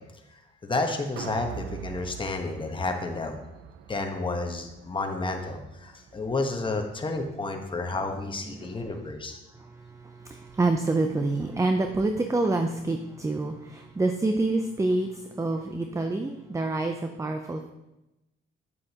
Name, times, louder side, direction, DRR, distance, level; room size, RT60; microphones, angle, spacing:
voice 1, 0.6-3.3 3.9-9.4, left 3 dB, 25° left, 4 dB, 1.1 m, -31 dB
sound 1, 1.2-7.4 7.8-7.9, right 10 dB, 85° right, 0.4 m, -44 dB
voice 2, 8.5-8.9 9.6-17.7, right 2 dB, 15° right, 6 dB, 0.5 m, -27 dB
8.6 x 7.5 x 2.9 m, 0.95 s
cardioid pair, 90°, 20 cm